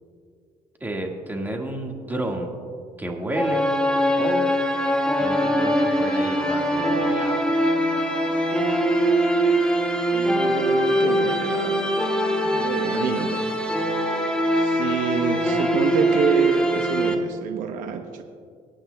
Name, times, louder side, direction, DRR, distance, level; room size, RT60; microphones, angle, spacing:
voice 1, 0.8-2.5 3.0-3.7 4.2-4.5 5.2-7.5, right 1 dB, 15° right, 1 dB, 1.7 m, -30 dB
sound 1, 3.3-17.1, equal, 5° left, 1.3 m, -22 dB
voice 2, 10.1-12.0 12.4-13.5 14.6-18.2, right 7 dB, 75° right, 5 dB, 0.8 m, -28 dB
24.5 x 9.1 x 2.3 m, 2.1 s
cardioid pair, 100°, 14 cm